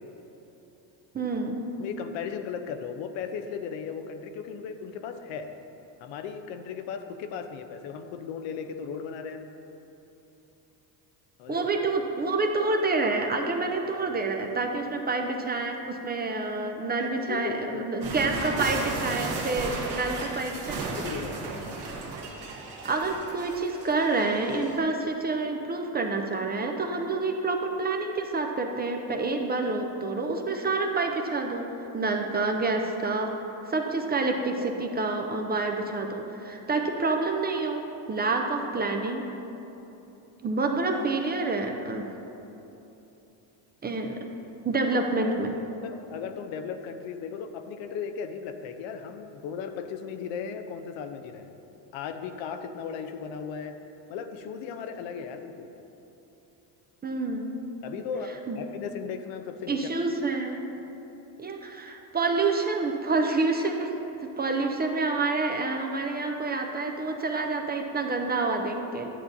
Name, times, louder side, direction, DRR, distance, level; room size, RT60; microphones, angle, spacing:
voice 1, 1.1-1.6 11.5-21.0 22.8-31.7 31.9-33.3 33.7-37.8 38.1-39.3 40.4-42.1 43.8-44.3 44.6-45.6 57.0-57.5 58.5-58.6 59.7-60.6 61.4-63.9 64.2-69.1, right 3 dB, 20° right, 3 dB, 0.5 m, -28 dB
voice 2, 1.8-5.5 6.0-9.5 11.4-11.7 17.0-17.8 21.0-21.5 45.8-51.5 51.9-53.7 54.1-55.7 57.8-59.8, left 6 dB, 75° left, 8 dB, 0.7 m, -36 dB
sound 1, 18.0-24.8, right 3 dB, 55° right, 1.3 m, -35 dB
10.0 x 6.8 x 2.6 m, 3.0 s
supercardioid pair, 95°, 47 cm